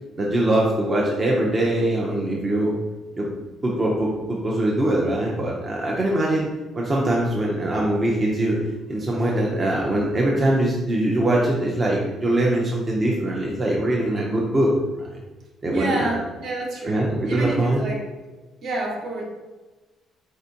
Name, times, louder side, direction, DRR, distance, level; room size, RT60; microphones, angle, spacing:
voice 1, 0.2-2.8 3.2-3.3 3.6-6.5 6.7-8.6 8.9-14.7 15.0-15.2 15.6-16.1 16.8-17.8, right 1 dB, 25° right, -3 dB, 0.6 m, -22 dB
voice 2, 15.7-18.0 18.6-19.2, right 2 dB, 60° right, -2 dB, 1.3 m, -28 dB
4.4 x 3.8 x 2.8 m, 1.2 s
cardioid pair, 130°, 0 cm